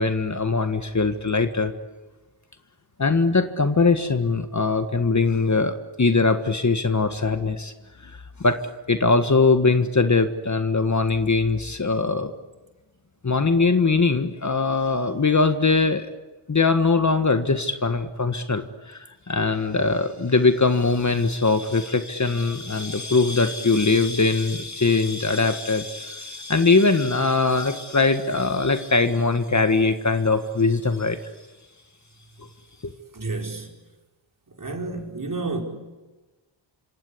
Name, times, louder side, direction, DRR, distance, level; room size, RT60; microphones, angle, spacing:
voice 1, 0.0-1.7 3.0-7.7 8.0-8.1 8.4-8.6 8.9-12.3 13.2-16.1 16.5-31.2 32.8-32.9, left 3 dB, 35° left, 1.6 m, -21 dB
voice 2, 33.1-33.7 34.6-35.6, right 3 dB, 40° right, 5.0 m, -30 dB
26.5 x 26.5 x 8.6 m
wide cardioid pair, 80°, 49 cm